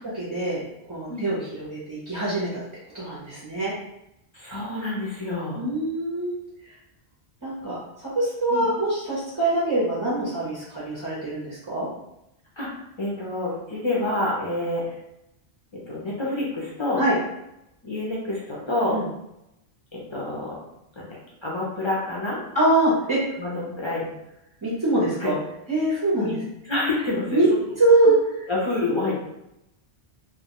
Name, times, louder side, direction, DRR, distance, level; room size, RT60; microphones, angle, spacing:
voice 1, 0.1-0.6 0.9-2.6 2.9-3.7 5.5-6.3 7.4-7.8 8.0-11.9 17.0-17.1 18.9-19.0 22.5-23.2 24.6-25.3 25.7-26.4 27.3-27.5 27.8-28.5, right 2 dB, 25° right, -8 dB, 0.5 m, -23 dB
voice 2, 4.3-5.6 8.5-8.7 12.6-12.7 13.0-14.8 15.9-17.0 17.8-19.0 19.9-20.6 21.0-21.1 21.4-22.4 23.4-24.1 25.2-25.3 26.2-26.4 26.7-27.6 28.5-29.1, left 2 dB, 40° left, -5 dB, 0.4 m, -27 dB
2.2 x 2.1 x 2.9 m, 0.85 s
omnidirectional pair, 1.1 m